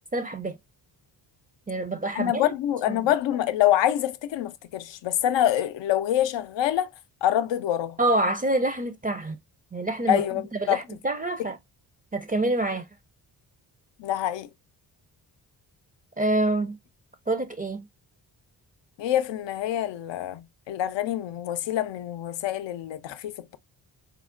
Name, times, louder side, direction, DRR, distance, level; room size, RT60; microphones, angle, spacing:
voice 1, 0.1-0.6 1.7-2.4 2.9-3.1 8.0-9.4 9.7-11.6 12.1-12.9 16.2-16.8 17.3-17.9, right 2 dB, 20° right, 0.4 m, -27 dB
voice 2, 2.2-6.9 7.2-8.0 10.1-10.8 14.0-14.5 19.0-23.6, left 12 dB, 80° left, 0.5 m, -26 dB
4.4 x 2.1 x 2.4 m
cardioid pair, 75°, 43 cm